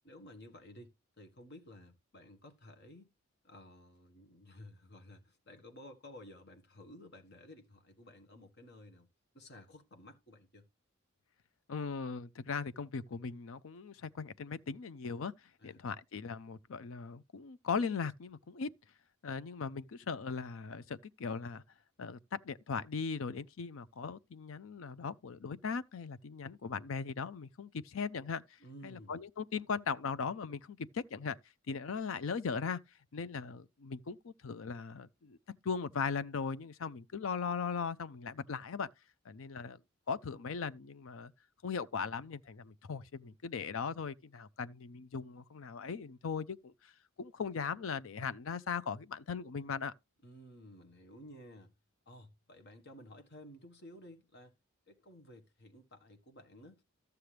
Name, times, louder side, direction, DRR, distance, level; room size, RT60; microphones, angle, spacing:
voice 1, 0.0-3.1 3.4-9.1 9.3-10.7 15.6-15.8 28.6-29.2 50.2-51.7 52.0-54.5 54.9-56.8, left 1 dB, 55° left, 1.6 m, -54 dB
voice 2, 11.7-15.3 15.6-18.7 19.2-21.6 22.0-22.2 22.4-28.4 28.8-31.4 31.7-32.8 33.1-35.4 35.6-38.9 39.3-39.8 40.1-41.3 41.6-46.7 47.2-49.9, left 5 dB, 70° left, 0.5 m, -38 dB
13.0 x 6.8 x 3.3 m
head